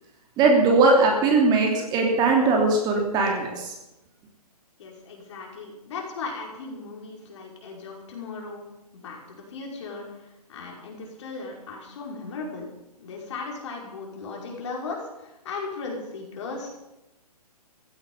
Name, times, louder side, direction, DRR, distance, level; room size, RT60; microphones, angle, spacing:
voice 1, 0.4-3.7, right 3 dB, 20° right, 1 dB, 3.0 m, -20 dB
voice 2, 4.8-8.7 8.9-12.7 13.0-16.7, left 4 dB, 45° left, -1 dB, 5.4 m, -37 dB
16.0 x 15.0 x 5.6 m, 0.95 s
figure-of-eight pair, 130°, 20 cm